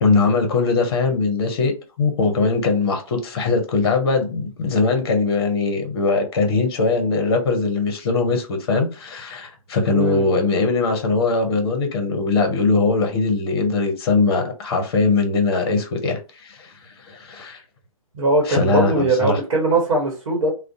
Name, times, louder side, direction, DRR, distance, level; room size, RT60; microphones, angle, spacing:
voice 1, 0.0-1.7 2.0-16.7 17.0-17.6 18.5-19.4, left 3 dB, 45° left, 0.7 m, -21 dB
voice 2, 9.9-10.4 18.1-20.5, right 2 dB, 55° right, 1.0 m, -20 dB
2.4 x 2.0 x 2.6 m
figure-of-eight pair, 130°, 18 cm